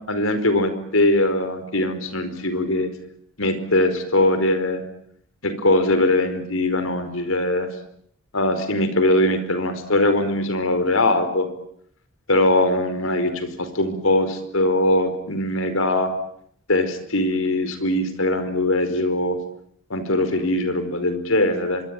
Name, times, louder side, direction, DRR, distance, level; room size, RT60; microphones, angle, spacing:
voice 1, 0.1-2.9 3.4-4.8 5.4-7.7 8.3-11.5 12.3-16.1 16.7-19.4 19.9-21.8, left 1 dB, 85° left, 10 dB, 4.9 m, -21 dB
25.5 x 23.0 x 8.9 m, 0.68 s
head